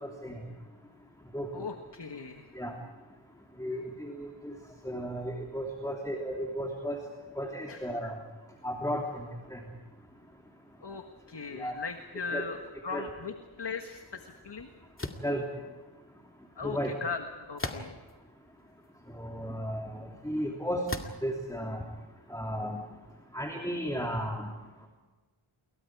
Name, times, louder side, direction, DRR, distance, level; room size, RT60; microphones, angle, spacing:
voice 1, 0.0-0.4 1.3-1.5 2.6-2.7 3.6-4.5 4.8-7.0 7.4-8.2 8.6-9.3 9.5-9.6 11.5-11.7 12.3-12.4 12.9-13.1 15.2-15.4 16.6-16.9 19.2-20.8 21.2-21.8 22.3-22.8 23.3-24.5, equal, 5° left, 1 dB, 3.0 m, -34 dB
voice 2, 1.5-2.5 7.7-8.1 10.8-11.0 11.3-14.7 16.6-18.0, left 5 dB, 55° left, 5 dB, 1.7 m, -39 dB
sound 1, 15.0-15.3 17.6-18.1 18.8-18.9 20.9-21.3, left 2 dB, 25° left, 2.2 m, -36 dB
28.0 x 23.0 x 4.8 m, 1.3 s
wide cardioid pair, 65°, 50 cm